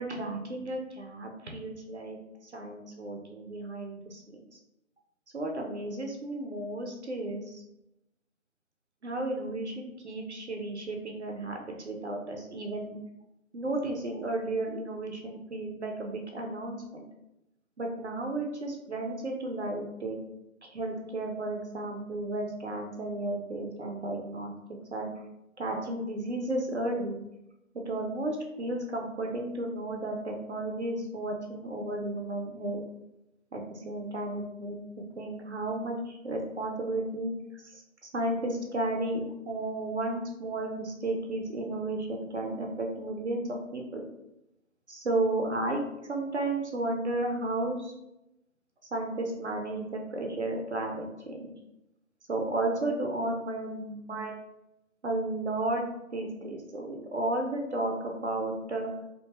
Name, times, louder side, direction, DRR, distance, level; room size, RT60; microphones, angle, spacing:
voice 1, 0.0-2.2 2.4-4.4 5.3-7.6 9.0-13.0 13.5-17.1 17.8-20.2 20.6-24.5 24.9-25.1 25.6-27.2 27.9-32.8 33.5-34.8 35.2-37.8 38.1-43.4 43.7-44.0 44.9-47.9 48.9-51.5 52.3-54.4 55.0-55.8 56.1-58.9, right 2 dB, 55° right, 2 dB, 0.5 m, -33 dB
2.5 x 2.2 x 2.9 m, 0.89 s
figure-of-eight pair, 150°, 42 cm